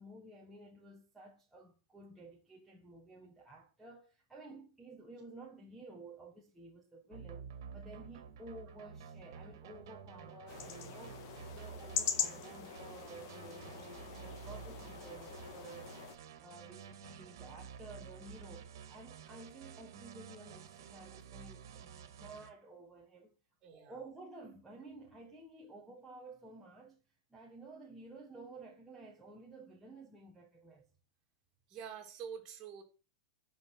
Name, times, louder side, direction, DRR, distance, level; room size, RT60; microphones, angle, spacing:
voice 1, 0.0-7.5 7.7-15.9 16.4-23.4 23.7-27.0 27.3-30.9, right 2 dB, 5° right, 1.4 m, -53 dB
sound 1, 7.1-22.5, right 7 dB, 60° right, 1.9 m, -51 dB
sound 2, 10.5-16.2, left 8 dB, 45° left, 1.7 m, -41 dB
voice 2, 23.6-24.0 31.7-32.8, right 7 dB, 25° right, 2.9 m, -46 dB
11.5 x 5.3 x 6.3 m
supercardioid pair, 170°, 2 cm